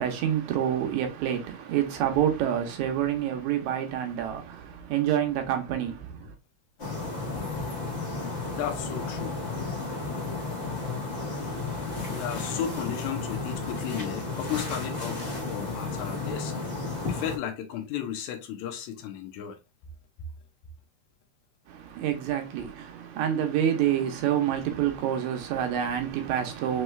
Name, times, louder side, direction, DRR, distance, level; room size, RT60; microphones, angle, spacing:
voice 1, 0.0-6.3 21.7-26.8, right 10 dB, 85° right, 2.1 m, -27 dB
sound 1, 6.8-17.4, left 3 dB, 40° left, 1.0 m, -33 dB
voice 2, 8.6-9.4 12.1-15.2 15.5-16.6 17.1-19.6, left 9 dB, 85° left, 2.0 m, -34 dB
5.3 x 3.1 x 2.2 m
omnidirectional pair, 3.3 m